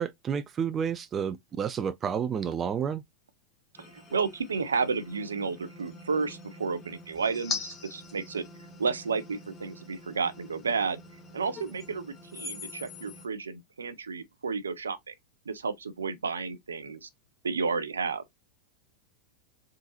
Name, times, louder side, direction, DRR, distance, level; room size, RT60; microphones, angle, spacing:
voice 1, 0.0-3.0, right 7 dB, 25° right, 0.3 m, -30 dB
sound 1, 3.7-13.3, left 4 dB, 20° left, 1.5 m, -43 dB
voice 2, 3.9-8.4 8.8-11.0 11.3-15.1 15.5-17.1 17.4-18.2, right 5 dB, 70° right, 0.6 m, -31 dB
3.7 x 3.7 x 2.8 m
figure-of-eight pair, 90°, 0 cm